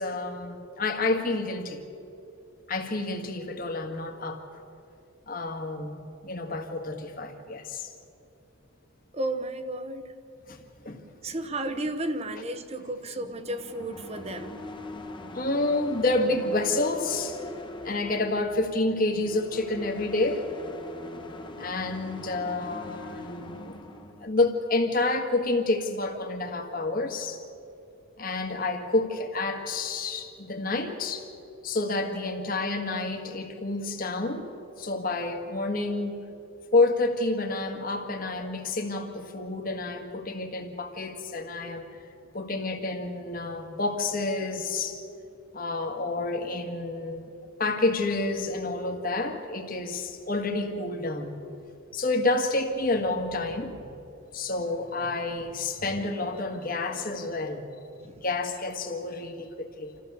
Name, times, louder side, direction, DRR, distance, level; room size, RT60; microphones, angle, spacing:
voice 1, 0.0-1.8 2.7-4.4 5.3-7.9 10.5-10.6 10.8-11.0 11.3-11.4 15.3-17.4 17.8-20.5 21.6-23.8 24.2-27.4 28.2-31.3 31.6-36.2 36.7-41.8 42.3-45.0 45.5-47.3 47.6-51.4 51.9-53.9 54.3-57.6 58.1-60.0, left 2 dB, 40° left, 4 dB, 1.7 m, -29 dB
voice 2, 9.1-10.1 11.2-14.5 58.0-58.2, right 1 dB, 30° right, 9 dB, 1.0 m, -33 dB
sound 1, 13.2-24.2, left 2 dB, 25° left, 1.1 m, -42 dB
27.0 x 14.5 x 7.0 m, 2.7 s
head